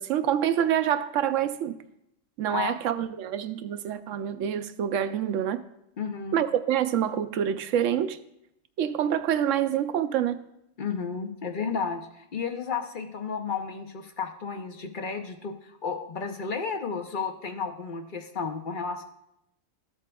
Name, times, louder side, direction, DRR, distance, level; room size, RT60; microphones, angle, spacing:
voice 1, 0.0-1.8 2.4-5.6 6.3-8.2 8.8-10.4, right 9 dB, 75° right, 0.9 m, -26 dB
voice 2, 6.0-6.4 10.8-19.0, left 5 dB, 50° left, 0.7 m, -32 dB
13.5 x 7.6 x 2.2 m
omnidirectional pair, 1.3 m